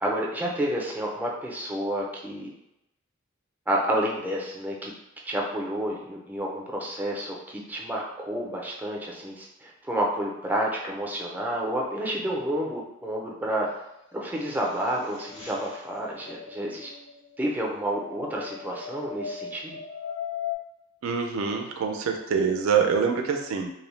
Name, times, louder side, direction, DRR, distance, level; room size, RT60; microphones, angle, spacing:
voice 1, 0.0-2.5 3.7-4.9 5.3-13.7 14.1-16.9 17.4-19.8, right 1 dB, 10° right, -2 dB, 0.4 m, -30 dB
sound 1, 14.1-20.5, left 7 dB, 85° left, 0.8 m, -39 dB
voice 2, 21.0-23.7, right 6 dB, 80° right, 3 dB, 0.4 m, -25 dB
2.6 x 2.0 x 3.0 m, 0.86 s
head